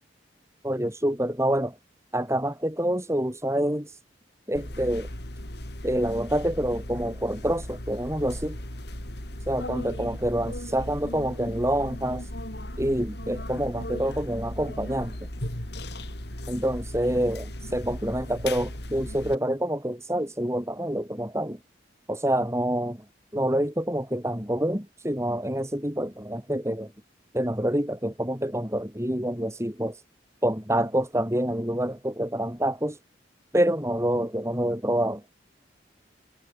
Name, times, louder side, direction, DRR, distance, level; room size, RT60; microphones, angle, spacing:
voice 1, 0.6-1.8 2.1-4.0 4.5-5.1 5.8-8.6 9.5-12.3 12.8-15.2 16.5-17.4 17.7-21.6 22.1-23.0 23.3-26.9 27.3-30.0 30.4-33.0 33.5-35.2, right 1 dB, 15° right, 6.2 m, -27 dB
sound 1, 4.5-19.3, left 1 dB, 60° left, 5.4 m, -37 dB
head